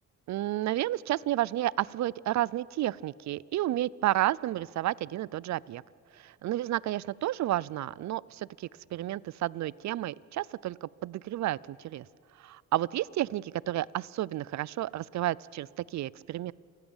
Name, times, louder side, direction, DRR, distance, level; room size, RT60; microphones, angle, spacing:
voice 1, 0.3-5.8 6.2-12.0 12.4-16.5, right 14 dB, 65° right, 23 dB, 0.6 m, -31 dB
29.0 x 19.5 x 7.3 m, 2.4 s
cardioid pair, 90°, 30 cm